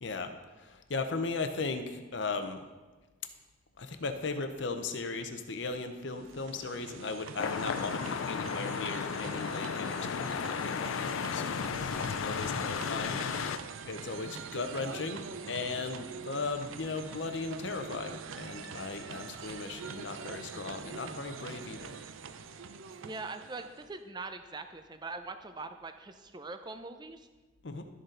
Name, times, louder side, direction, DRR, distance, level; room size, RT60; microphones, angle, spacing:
voice 1, 0.0-2.6 3.8-11.9 12.2-22.0 27.6-27.9, left 3 dB, 65° left, 7 dB, 0.8 m, -37 dB
sound 1, 5.9-24.0, right 6 dB, 85° right, 0.5 m, -45 dB
sound 2, 7.4-13.6, left 6 dB, 85° left, 0.4 m, -34 dB
voice 2, 23.0-27.3, right 3 dB, 20° right, 8 dB, 0.5 m, -42 dB
12.5 x 6.4 x 3.9 m, 1.3 s
head